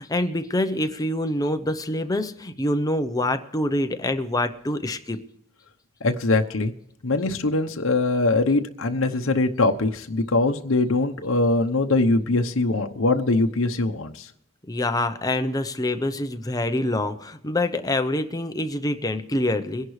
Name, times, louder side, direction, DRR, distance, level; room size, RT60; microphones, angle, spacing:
voice 1, 0.0-5.2 14.7-19.9, left 1 dB, 15° left, 8 dB, 0.8 m, -26 dB
voice 2, 6.0-6.7 7.0-14.3, left 2 dB, 65° left, 4 dB, 0.9 m, -22 dB
22.5 x 11.0 x 3.2 m, 0.76 s
head